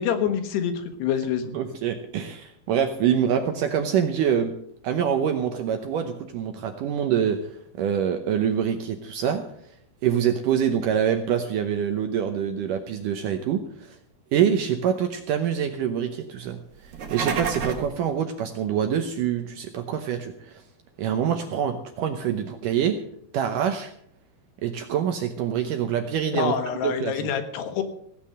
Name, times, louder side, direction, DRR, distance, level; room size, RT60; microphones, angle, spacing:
voice 1, 0.0-1.5 26.3-27.8, left 8 dB, 80° left, 7 dB, 3.5 m, -26 dB
voice 2, 1.5-4.5 4.8-7.4 7.8-9.4 10.0-14.0 14.3-16.6 17.1-20.6 21.0-23.0 23.3-23.9 24.6-26.5 26.8-27.3, right 8 dB, 75° right, 6 dB, 2.0 m, -25 dB
sound 1, 16.8-17.9, right 6 dB, 55° right, 2.7 m, -29 dB
16.5 x 8.9 x 6.5 m, 0.70 s
omnidirectional pair, 4.7 m